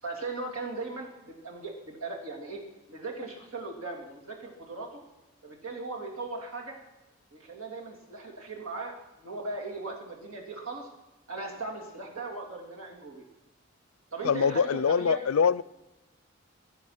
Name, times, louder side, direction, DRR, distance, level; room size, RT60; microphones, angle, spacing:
voice 1, 0.0-2.6 2.9-5.0 5.4-6.8 7.3-10.9 11.3-13.2 14.1-15.2, right 3 dB, 85° right, 3.1 m, -38 dB
voice 2, 14.2-15.6, left 6 dB, 80° left, 0.4 m, -24 dB
23.5 x 8.1 x 6.0 m
head